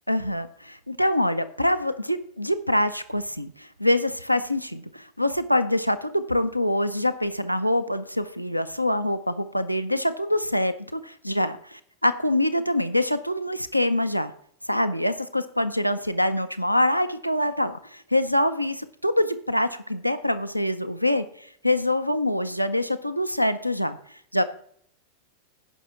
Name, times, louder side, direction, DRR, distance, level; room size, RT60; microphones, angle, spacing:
voice 1, 0.1-11.6 12.0-14.3 14.7-24.4, left 1 dB, 90° left, 10 dB, 0.6 m, -25 dB
16.5 x 5.7 x 3.8 m, 0.64 s
figure-of-eight pair, 90°, 0 cm